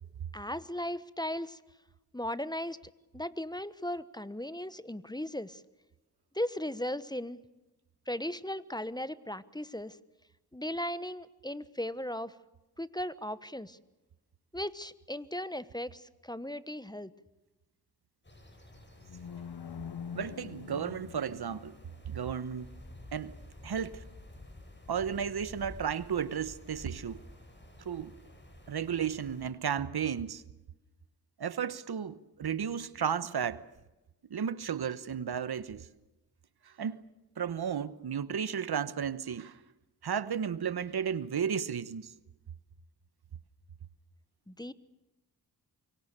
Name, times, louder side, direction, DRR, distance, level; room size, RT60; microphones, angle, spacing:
voice 1, 0.3-1.6 2.1-2.8 3.1-5.6 6.3-7.4 8.1-10.0 10.5-12.3 12.8-13.8 14.5-17.1 44.5-44.7, left 1 dB, 10° left, 1.2 m, -37 dB
sound 1, 18.2-29.5, left 1 dB, 30° left, 7.4 m, -51 dB
sound 2, 18.7-22.0, left 7 dB, 70° left, 1.0 m, -44 dB
voice 2, 20.1-21.7 22.0-22.7 23.1-23.3 23.6-24.0 24.9-27.2 27.8-28.1 28.7-30.4 31.4-33.6 34.3-35.9 36.7-37.0 37.4-39.6 40.0-42.1, right 7 dB, 70° right, 1.1 m, -33 dB
25.5 x 23.0 x 6.8 m
cardioid pair, 45°, 39 cm